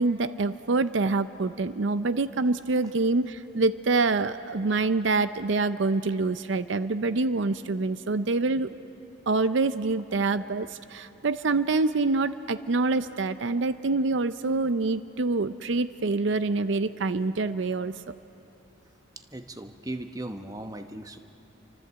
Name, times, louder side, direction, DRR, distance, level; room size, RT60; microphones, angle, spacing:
voice 1, 0.0-8.7 9.3-18.1, right 3 dB, 65° right, 13 dB, 0.6 m, -26 dB
voice 2, 19.3-21.2, right 1 dB, 15° right, 7 dB, 0.9 m, -37 dB
29.0 x 24.5 x 8.1 m, 3.0 s
head